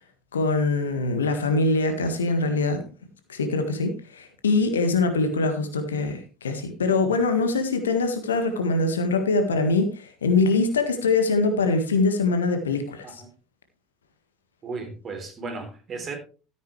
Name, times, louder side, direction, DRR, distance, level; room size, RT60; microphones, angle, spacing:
voice 1, 0.3-2.8 3.3-13.2, left 3 dB, 75° left, 1.6 m, -23 dB
voice 2, 14.6-16.2, right 4 dB, 30° right, 3.8 m, -35 dB
13.5 x 9.3 x 3.2 m
figure-of-eight pair, 65°, 0 cm